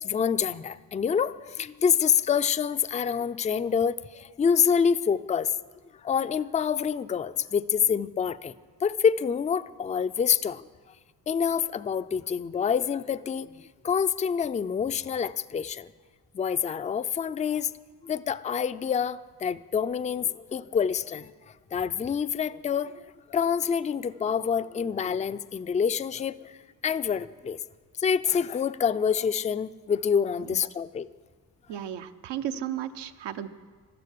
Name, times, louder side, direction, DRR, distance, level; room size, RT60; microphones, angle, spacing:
voice 1, 0.0-5.5 6.0-8.5 8.8-10.6 11.3-15.9 16.3-17.7 18.0-21.3 21.7-22.9 23.3-26.5 26.8-27.6 28.0-31.1, left 7 dB, 20° left, 13 dB, 0.4 m, -27 dB
voice 2, 31.7-33.5, right 10 dB, 80° right, 10 dB, 0.9 m, -34 dB
13.5 x 12.5 x 8.4 m, 1.5 s
cardioid pair, 90°, 41 cm